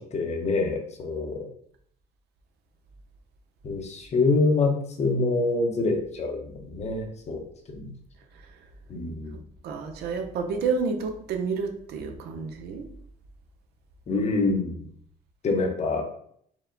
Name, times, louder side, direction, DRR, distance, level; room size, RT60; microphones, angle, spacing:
voice 1, 0.1-1.4 3.6-6.4 6.7-7.4 7.7-7.9 8.9-9.3 14.1-14.7 15.4-16.0, left 3 dB, 40° left, 3 dB, 0.9 m, -25 dB
voice 2, 9.6-12.9, right 5 dB, 75° right, 5 dB, 0.7 m, -29 dB
4.8 x 2.1 x 3.8 m, 0.66 s
cardioid pair, 110°, 17 cm